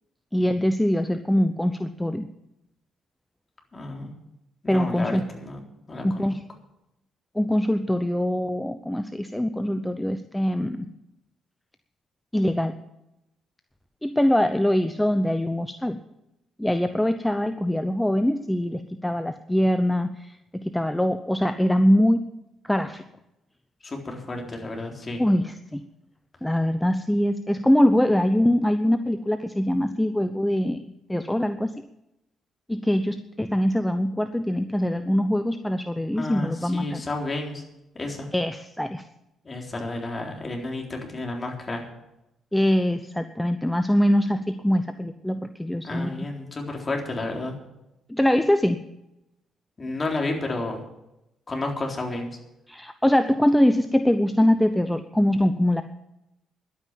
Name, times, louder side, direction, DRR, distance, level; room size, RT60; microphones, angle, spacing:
voice 1, 0.3-2.3 4.7-5.2 6.0-6.4 7.4-10.9 12.3-12.7 14.0-16.0 16.6-22.2 22.6-23.0 25.2-25.8 26.4-30.8 31.1-31.7 32.7-37.0 38.3-39.0 42.5-46.1 48.1-48.8 52.7-55.8, left 1 dB, 5° left, 9 dB, 0.7 m, -23 dB
voice 2, 3.7-4.1 4.6-5.6 5.9-6.3 23.8-25.2 36.1-37.6 37.9-38.3 39.4-41.9 45.8-47.6 49.8-50.8 51.5-52.3, left 2 dB, 30° left, 1 dB, 3.8 m, -31 dB
11.5 x 9.1 x 9.0 m, 0.88 s
cardioid pair, 90°, 0 cm